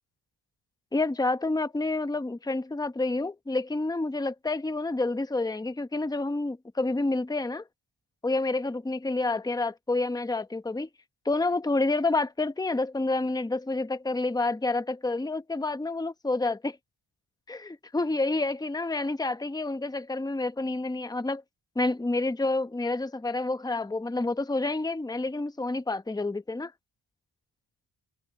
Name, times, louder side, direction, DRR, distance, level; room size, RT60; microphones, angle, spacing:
voice 1, 0.9-7.6 8.2-10.9 11.2-16.8 17.5-21.4 21.8-26.7, left 2 dB, 10° left, 0.9 m, -29 dB
cardioid pair, 85°, 47 cm